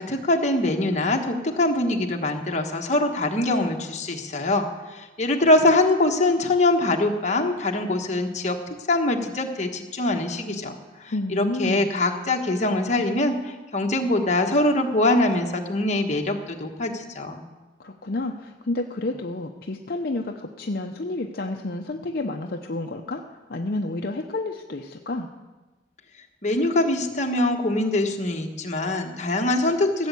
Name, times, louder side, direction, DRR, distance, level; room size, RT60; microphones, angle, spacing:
voice 1, 0.0-8.6 8.9-17.4 26.4-30.1, left 2 dB, 40° left, 2 dB, 1.3 m, -23 dB
voice 2, 11.1-11.9 17.8-23.2 23.5-25.3, left 2 dB, 55° left, 3 dB, 0.7 m, -30 dB
16.0 x 7.3 x 8.3 m, 1.2 s
head